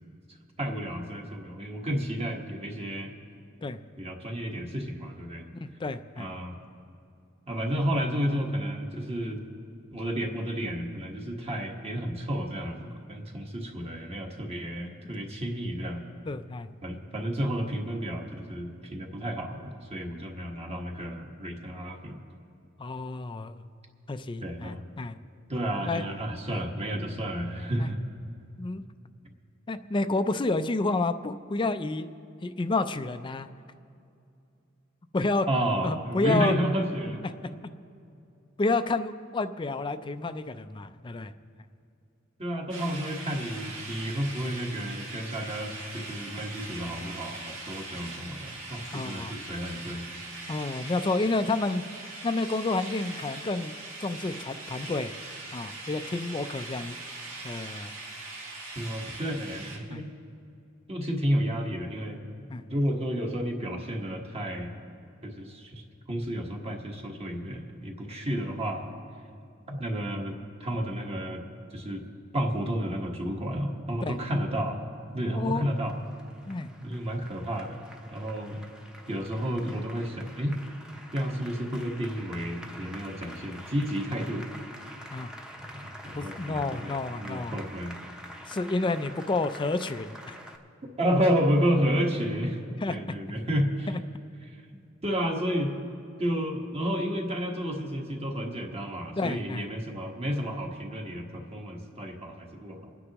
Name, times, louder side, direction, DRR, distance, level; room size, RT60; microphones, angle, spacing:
voice 1, 0.6-3.1 4.0-5.4 6.1-6.6 7.5-9.4 9.9-16.0 16.8-22.1 24.4-24.8 25.5-28.0 35.5-37.2 42.4-50.0 58.7-60.1 60.9-62.2 62.7-64.7 65.2-65.8 66.1-68.9 69.7-70.3 70.6-71.4 71.7-72.0 72.3-74.8 75.1-76.0 76.8-77.8 78.1-78.6 79.1-80.6 81.1-84.5 85.6-87.9 91.0-92.6 92.9-93.9 94.5-94.6 95.0-95.7 96.2-102.9, equal, 30° right, 1 dB, 1.4 m, -31 dB
voice 2, 5.5-6.3 16.3-16.7 22.8-23.6 24.1-25.1 25.8-26.0 26.4-26.5 27.8-27.9 28.6-28.8 29.7-32.1 32.4-33.5 35.1-35.5 35.8-36.5 37.2-37.3 38.6-41.3 48.9-49.3 50.5-51.8 52.2-53.7 54.0-55.1 55.5-57.0 57.4-57.9 59.9-60.0 62.5-62.6 74.0-74.2 75.4-75.7 76.5-76.7 85.1-85.3 86.2-87.6 88.5-90.4 92.8-93.0 93.9-94.0 99.2-99.6, left 2 dB, 25° left, 10 dB, 0.4 m, -30 dB
sound 1, 42.7-59.8, right 2 dB, 85° right, 2.1 m, -41 dB
Applause, 75.2-90.6, equal, 5° right, 0.8 m, -47 dB
28.5 x 9.8 x 3.0 m, 2.6 s
head